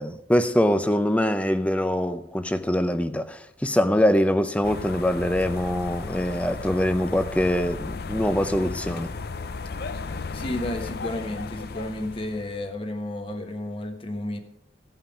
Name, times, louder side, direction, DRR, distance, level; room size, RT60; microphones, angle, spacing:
voice 1, 0.0-9.1, left 1 dB, 5° left, 0.5 m, -23 dB
sound 1, 4.6-12.7, left 4 dB, 55° left, 0.5 m, -35 dB
voice 2, 10.3-14.4, left 1 dB, 30° left, 1.3 m, -32 dB
15.5 x 5.7 x 5.1 m
head